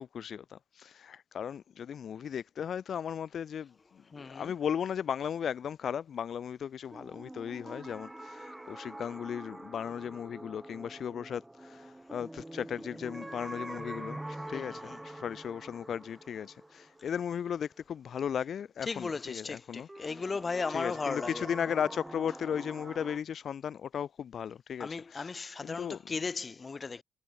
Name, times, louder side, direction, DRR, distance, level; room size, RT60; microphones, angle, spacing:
voice 1, 0.0-19.9 20.7-25.3 25.6-26.0, left 8 dB, 65° left, 1.2 m, -36 dB
voice 2, 4.1-4.5 14.5-15.0 18.8-21.5 24.8-27.0, left 4 dB, 40° left, 1.7 m, -36 dB
sound 1, 6.9-17.8 19.9-23.2, right 1 dB, 10° right, 1.7 m, -45 dB
supercardioid pair, 55°, 0 cm